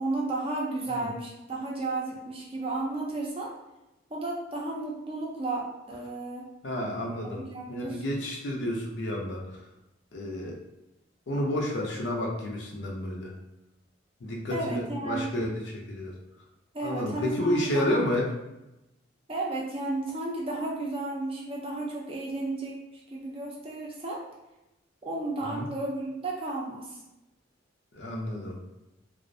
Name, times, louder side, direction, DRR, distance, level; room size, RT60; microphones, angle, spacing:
voice 1, 0.0-3.5 4.1-6.5 7.2-8.0 14.5-15.3 16.7-18.0 19.3-24.2 25.0-27.0, right 2 dB, 30° right, -3 dB, 0.5 m, -33 dB
voice 2, 6.6-7.4 7.7-9.7 10.1-10.6 11.3-13.3 14.2-16.2 16.8-18.3 25.4-25.7 27.9-28.6, left 1 dB, 65° left, -1 dB, 0.5 m, -31 dB
2.4 x 2.0 x 2.6 m, 0.94 s
head